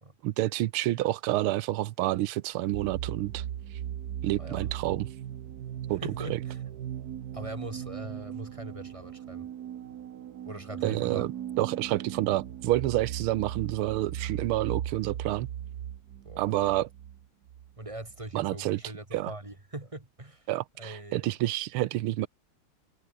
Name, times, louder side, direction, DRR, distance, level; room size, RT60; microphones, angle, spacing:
voice 1, 0.2-3.4 4.2-5.1 5.9-6.0 6.3-6.4 10.8-11.3 11.6-15.5 16.4-16.9 18.3-18.8 19.1-19.3 20.5-22.3, right 15 dB, 85° right, 1.6 m, -28 dB
sound 1, 2.7-18.3, right 10 dB, 55° right, 1.2 m, -38 dB
voice 2, 5.9-6.6 7.3-9.5 10.4-11.3 16.2-16.6 17.8-20.5 20.8-21.3, right 2 dB, 15° right, 2.3 m, -41 dB
omnidirectional pair, 2.4 m